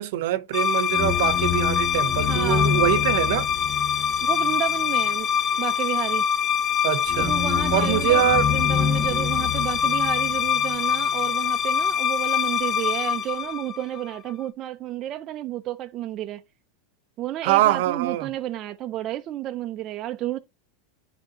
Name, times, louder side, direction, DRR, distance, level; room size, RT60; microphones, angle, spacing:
voice 1, 0.0-3.5 6.8-7.4 7.7-8.5 17.4-18.3, right 14 dB, 70° right, 0.8 m, -23 dB
sound 1, 0.5-14.2, left 8 dB, 25° left, 0.6 m, -23 dB
voice 2, 2.3-2.8 4.2-5.3 5.6-6.2 7.2-16.4 17.2-20.4, right 13 dB, 40° right, 0.4 m, -31 dB
10.5 x 3.5 x 2.9 m
supercardioid pair, 130°, 0 cm